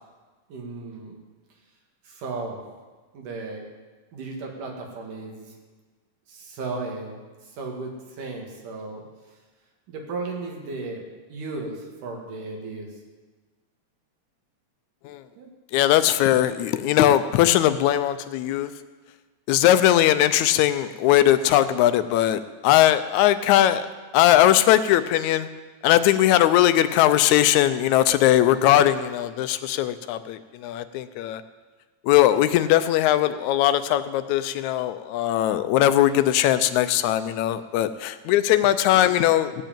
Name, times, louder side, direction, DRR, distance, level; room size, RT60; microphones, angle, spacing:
voice 1, 0.5-1.2 2.0-2.6 3.1-3.6 4.1-5.5 6.3-9.0 9.9-11.0 11.3-12.9 15.4-15.5, right 3 dB, 80° right, 0 dB, 3.5 m, -35 dB
voice 2, 15.7-18.7 19.5-23.9 24.1-25.5 25.8-31.4 32.0-39.6, left 12 dB, 80° left, 12 dB, 1.8 m, -20 dB
16.5 x 5.5 x 8.8 m, 1.3 s
omnidirectional pair, 3.6 m